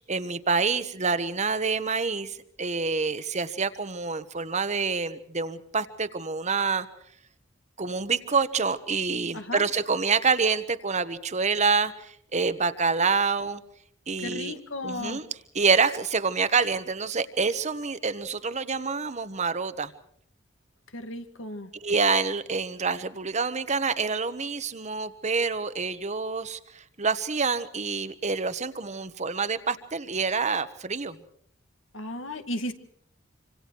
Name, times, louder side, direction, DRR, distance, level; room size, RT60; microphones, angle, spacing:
voice 1, 0.0-6.9 7.8-13.6 14.1-14.5 14.8-15.3 15.5-19.9 21.8-31.2, right 4 dB, 35° right, 12 dB, 1.2 m, -27 dB
voice 2, 9.3-9.7 14.2-15.2 20.9-21.7 31.9-32.7, left 1 dB, 75° left, 8 dB, 2.0 m, -34 dB
26.5 x 26.0 x 4.6 m, 0.66 s
head